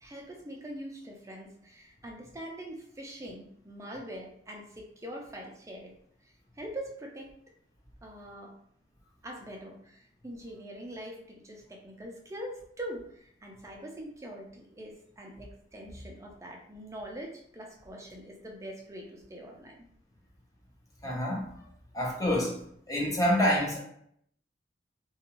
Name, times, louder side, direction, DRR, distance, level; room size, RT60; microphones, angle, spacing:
voice 1, 0.0-7.3 8.0-8.6 9.2-19.8, right 1 dB, 15° right, 0.4 m, -43 dB
voice 2, 21.0-21.5 21.9-22.6 22.9-23.8, equal, 20° left, 0.7 m, -27 dB
2.5 x 2.3 x 2.9 m
head